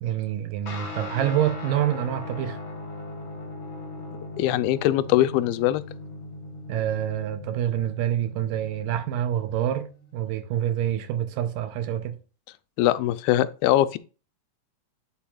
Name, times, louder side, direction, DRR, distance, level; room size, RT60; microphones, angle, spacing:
voice 1, 0.0-2.6 6.7-12.2, right 11 dB, 80° right, 2.1 m, -27 dB
Guitar, 0.7-10.3, left 2 dB, 55° left, 1.3 m, -39 dB
voice 2, 4.4-5.8 12.8-14.0, left 14 dB, 85° left, 2.4 m, -22 dB
8.9 x 7.2 x 2.3 m
omnidirectional pair, 4.3 m